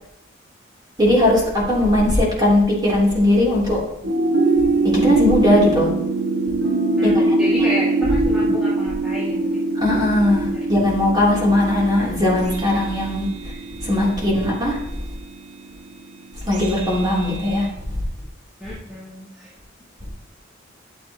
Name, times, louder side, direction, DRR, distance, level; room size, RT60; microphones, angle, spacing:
voice 1, 1.0-1.4 1.7-3.8 5.0-5.9 7.0-7.3 9.7-13.3 13.8-14.8 16.5-17.7, left 1 dB, 20° right, -5 dB, 3.2 m, -18 dB
sound 1, 4.0-17.6, right 2 dB, 80° right, 1.5 m, -23 dB
voice 2, 7.0-9.6 10.4-10.6 14.4-14.8 18.6-19.5, equal, 5° right, -11 dB, 2.1 m, -31 dB
13.0 x 7.4 x 2.9 m, 0.83 s
head